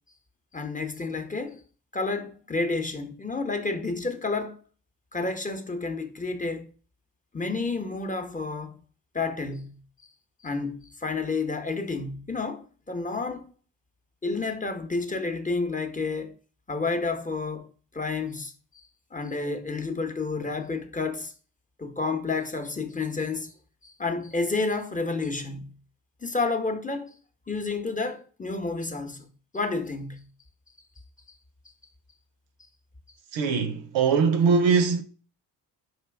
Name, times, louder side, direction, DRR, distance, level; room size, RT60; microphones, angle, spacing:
voice 1, 0.5-1.6 1.9-4.6 5.1-6.7 7.3-8.8 9.1-9.8 10.4-13.5 14.2-16.3 16.7-17.7 17.9-18.5 19.1-21.3 21.8-23.5 23.8-25.8 26.2-27.2 27.5-29.3 29.5-30.3, left 3 dB, 15° left, 0.7 m, -30 dB
voice 2, 33.3-35.0, right 5 dB, 85° right, 0.7 m, -21 dB
4.5 x 3.1 x 3.4 m
supercardioid pair, 55°, 46 cm